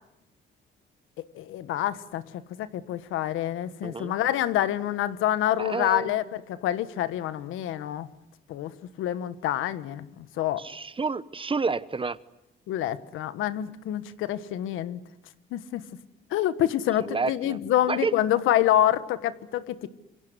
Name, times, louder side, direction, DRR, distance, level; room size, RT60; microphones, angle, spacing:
voice 1, 1.3-8.1 8.5-8.7 9.0-10.6 12.7-15.0 15.5-15.8 16.3-19.9, left 12 dB, 90° left, 14 dB, 1.4 m, -27 dB
voice 2, 3.8-4.1 5.6-6.2 10.6-12.2 17.0-17.6 17.9-18.2, right 4 dB, 25° right, 16 dB, 1.1 m, -29 dB
28.0 x 24.0 x 8.1 m, 0.94 s
cardioid pair, 90°, 20 cm